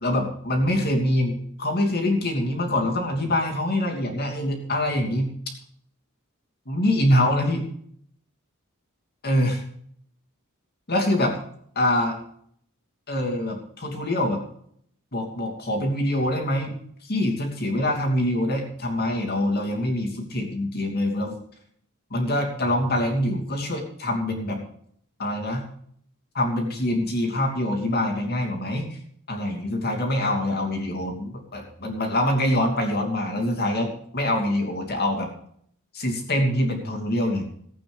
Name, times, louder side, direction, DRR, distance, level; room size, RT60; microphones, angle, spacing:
voice 1, 0.0-5.3 6.7-7.7 9.2-9.6 10.9-11.3 11.8-12.1 13.1-14.4 15.1-16.7 17.0-21.3 22.1-24.6 25.2-25.6 26.3-29.0 29.3-35.3 35.9-37.4, left 1 dB, 50° left, 2 dB, 2.8 m, -24 dB
16.0 x 8.6 x 5.1 m, 0.64 s
head